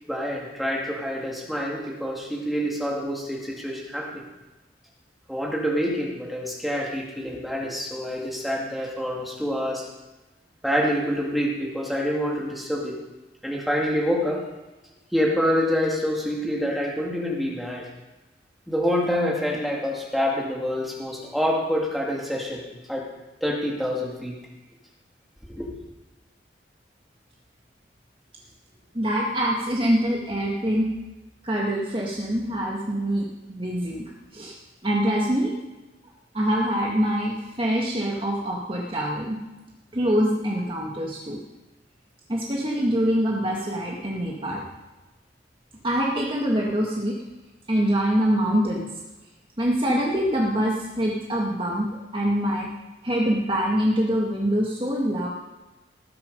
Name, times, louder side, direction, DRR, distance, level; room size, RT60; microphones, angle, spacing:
voice 1, 0.1-4.2 5.3-9.9 10.6-13.0 13.4-14.4 15.1-17.9 18.7-22.6 22.9-23.1 23.4-24.4 25.5-25.7, equal, ahead, -3 dB, 2.0 m, -26 dB
voice 2, 28.9-30.9 31.4-34.0 34.3-34.5 34.8-35.5 36.3-39.4 39.9-41.4 42.3-44.6 45.8-47.2 47.7-48.9 49.6-52.7 53.0-55.3, equal, 30° right, -2 dB, 1.5 m, -24 dB
18.5 x 7.4 x 5.2 m, 1.1 s
head